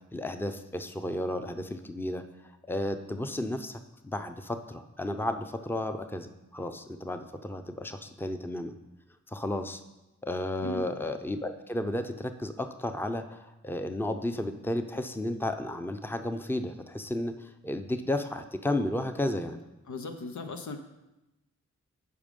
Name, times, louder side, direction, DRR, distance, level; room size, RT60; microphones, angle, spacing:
voice 1, 0.1-2.2 2.7-8.7 9.3-9.8 10.2-19.6, left 1 dB, 5° left, 8 dB, 0.7 m, -33 dB
voice 2, 19.9-20.8, left 3 dB, 75° left, 5 dB, 0.9 m, -37 dB
8.6 x 5.0 x 5.3 m, 0.98 s
cardioid pair, 50°, 29 cm